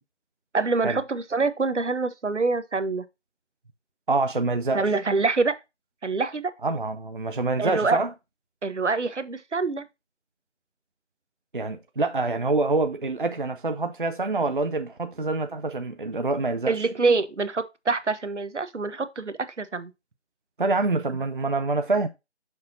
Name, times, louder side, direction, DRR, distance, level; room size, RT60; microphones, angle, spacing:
voice 1, 0.5-3.0 4.7-5.5 6.0-6.5 7.6-8.0 8.6-9.8 16.7-19.9, right 4 dB, 85° right, 1.1 m, -25 dB
voice 2, 4.1-4.9 6.6-8.1 11.5-16.9 20.6-22.1, right 3 dB, 50° right, 0.5 m, -26 dB
6.5 x 2.8 x 5.3 m
figure-of-eight pair, 175°, 34 cm